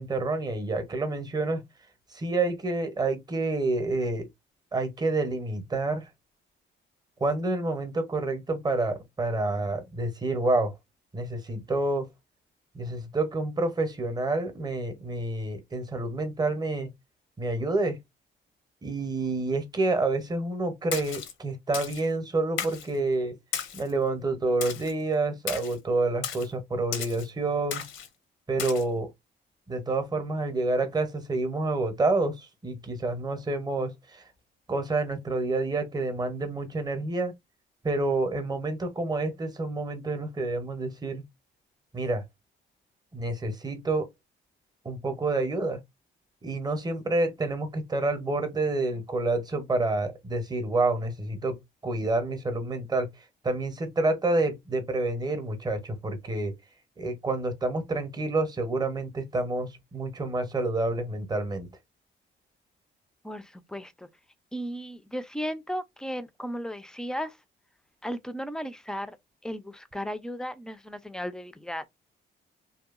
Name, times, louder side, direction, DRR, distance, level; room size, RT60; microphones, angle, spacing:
voice 1, 0.0-1.6 2.1-4.3 4.7-6.1 7.2-10.7 11.1-12.1 12.7-16.9 17.4-18.0 18.8-23.4 23.7-27.8 28.5-29.1 29.7-34.2 34.7-37.3 37.8-41.2 41.9-42.2 43.1-44.1 44.8-45.8 46.4-53.1 53.4-56.5 57.0-61.7, right 2 dB, 20° right, 0.8 m, -28 dB
Splash splatter, 20.9-21.3 21.7-22.0 22.6-22.9 23.5-23.9 24.6-24.9 25.5-25.8 26.2-26.5 26.9-27.3 27.7-28.1 28.6-28.8, left 8 dB, 90° left, 0.7 m, -34 dB
voice 2, 63.2-64.1 64.5-67.4 68.0-69.1 69.4-71.9, equal, 5° left, 0.4 m, -35 dB
2.7 x 2.3 x 2.4 m
cardioid pair, 90°, 20 cm